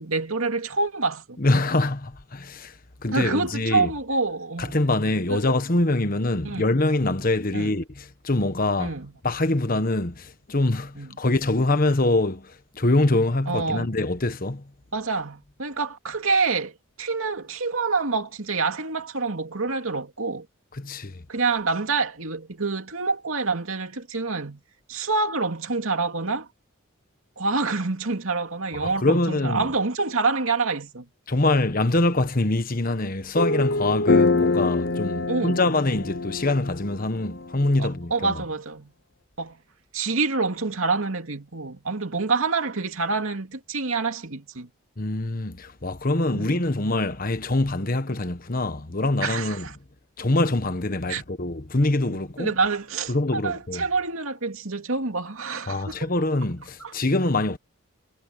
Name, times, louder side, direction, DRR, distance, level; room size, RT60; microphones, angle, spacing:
voice 1, 0.0-1.4 3.1-5.6 6.4-6.7 7.5-7.8 8.8-9.1 11.0-11.2 13.5-13.9 14.9-20.5 21.3-24.6 24.9-26.5 27.4-31.0 35.3-35.7 37.8-38.9 39.4-39.6 39.9-44.7 46.3-46.6 49.2-49.7 51.1-51.2 52.1-56.0 56.8-56.9, right 4 dB, 80° right, 2.6 m, -27 dB
voice 2, 1.4-2.7 3.0-3.9 4.6-8.9 9.2-14.6 20.8-21.2 28.7-29.6 31.3-38.3 45.0-49.6 50.2-52.5 53.1-53.8 55.7-57.6, left 2 dB, 40° left, 1.3 m, -24 dB
sound 1, 33.4-37.8, left 3 dB, 60° left, 0.8 m, -24 dB
head